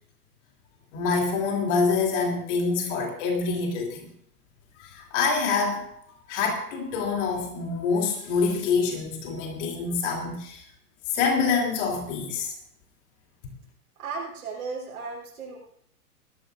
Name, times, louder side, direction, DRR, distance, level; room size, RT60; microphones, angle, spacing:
voice 1, 0.9-4.1 4.8-5.8 6.3-10.6 11.1-12.5, left 4 dB, 50° left, 1 dB, 3.0 m, -26 dB
voice 2, 14.0-15.6, right 4 dB, 65° right, -4 dB, 3.3 m, -35 dB
20.0 x 13.5 x 2.5 m, 0.67 s
figure-of-eight pair, 105°, 45 cm